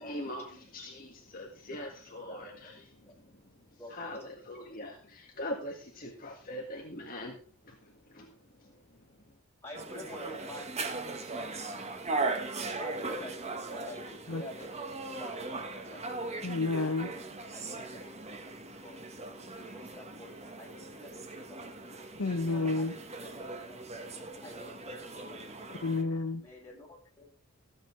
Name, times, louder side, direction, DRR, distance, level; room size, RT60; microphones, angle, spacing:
voice 1, 0.0-7.4 7.6-9.4, left 1 dB, 40° left, 1.9 m, -43 dB
voice 2, 2.1-3.1 3.8-4.4 9.6-11.4 12.7-16.6 17.5-18.2 18.8-19.0 19.6-22.1 22.7-23.8 24.1-25.8 26.4-27.2, left 1 dB, 10° left, 6.2 m, -50 dB
sound 1, 9.7-26.0, right 3 dB, 30° right, 1.3 m, -39 dB
voice 3, 16.4-17.1 22.2-22.9 25.8-26.4, left 3 dB, 75° left, 0.9 m, -30 dB
14.5 x 8.1 x 4.6 m
head